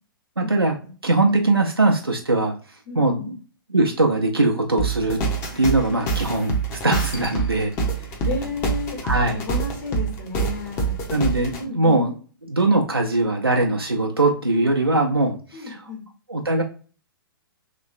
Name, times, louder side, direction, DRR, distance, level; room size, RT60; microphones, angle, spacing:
voice 1, 0.4-0.8 1.0-2.5 2.9-3.4 3.7-5.2 5.5-7.7 9.0-9.4 11.1-12.1 12.4-15.9 16.3-16.6, right 2 dB, 90° right, 1 dB, 0.5 m, -21 dB
voice 2, 2.9-3.3 7.3-7.4 8.2-9.0 9.3-11.0 11.6-12.0 15.5-16.0, left 4 dB, 50° left, -2 dB, 1.4 m, -32 dB
sound 1, 4.8-11.6, right 4 dB, 25° left, 0.8 m, -26 dB
3.1 x 2.9 x 2.5 m, 0.39 s
figure-of-eight pair, 115°, 12 cm